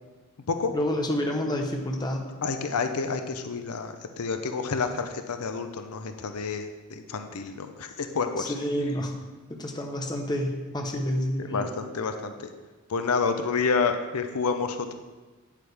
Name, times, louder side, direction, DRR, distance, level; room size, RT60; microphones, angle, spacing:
voice 1, 0.7-2.3 8.4-9.1 9.6-11.7, equal, 20° left, 1 dB, 0.9 m, -29 dB
voice 2, 2.4-8.5 10.9-11.0 11.4-12.5 12.9-14.9, left 5 dB, 80° left, 7 dB, 0.6 m, -29 dB
8.7 x 8.2 x 3.4 m, 1.3 s
head